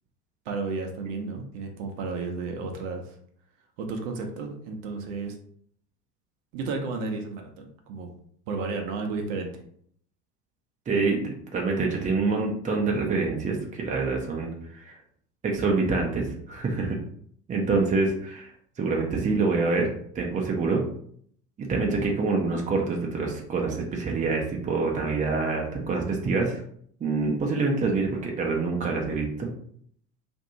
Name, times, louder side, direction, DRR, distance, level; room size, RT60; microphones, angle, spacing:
voice 1, 0.5-3.2 3.8-5.4 6.5-8.1 8.5-9.5, right 4 dB, 50° right, 3 dB, 0.8 m, -32 dB
voice 2, 10.9-15.0 15.4-17.0 17.5-18.5 18.8-20.8 21.6-26.6 27.0-29.5, right 3 dB, 15° right, 1 dB, 0.7 m, -26 dB
2.6 x 2.6 x 4.2 m, 0.63 s
figure-of-eight pair, 70°, 48 cm